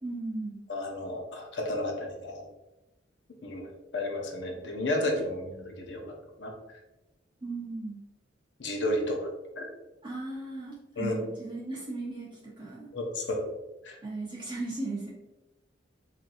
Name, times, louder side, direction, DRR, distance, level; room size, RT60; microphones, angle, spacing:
voice 1, 0.0-0.6 7.4-8.0 10.0-12.9 14.0-15.1, right 2 dB, 25° right, -8 dB, 0.8 m, -37 dB
voice 2, 0.7-2.5 3.4-6.0 6.4-6.5 8.6-9.3 9.6-9.7 11.0-11.2 12.9-13.4 13.8-14.0, left 1 dB, 70° left, 1 dB, 0.7 m, -32 dB
4.4 x 2.6 x 2.6 m, 1.0 s
head